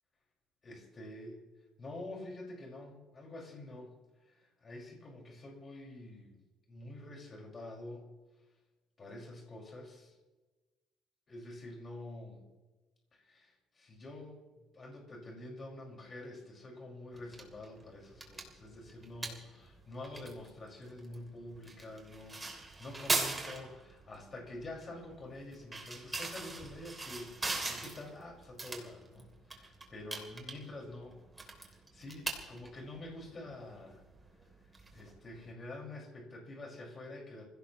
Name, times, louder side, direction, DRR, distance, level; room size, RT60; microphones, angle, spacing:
voice 1, 0.6-1.4 1.8-4.0 4.3-6.4 6.7-8.1 9.0-10.1 11.3-12.4 13.1-31.3 31.6-34.0 34.9-37.4, left 1 dB, 30° left, 0 dB, 5.2 m, -47 dB
sound 1, 17.1-35.5, right 2 dB, 15° right, 2.9 m, -42 dB
27.0 x 16.5 x 3.1 m, 1.2 s
cardioid pair, 140°, 0 cm